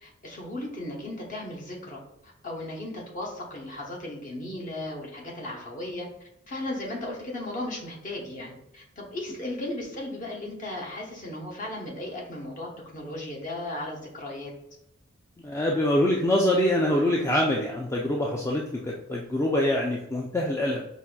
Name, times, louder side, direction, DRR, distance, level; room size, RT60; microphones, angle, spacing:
voice 1, 0.0-6.1 6.5-14.5, left 1 dB, 40° left, -2 dB, 0.9 m, -36 dB
voice 2, 15.4-20.8, left 1 dB, 15° left, -2 dB, 0.3 m, -25 dB
5.4 x 2.5 x 2.2 m, 0.85 s
head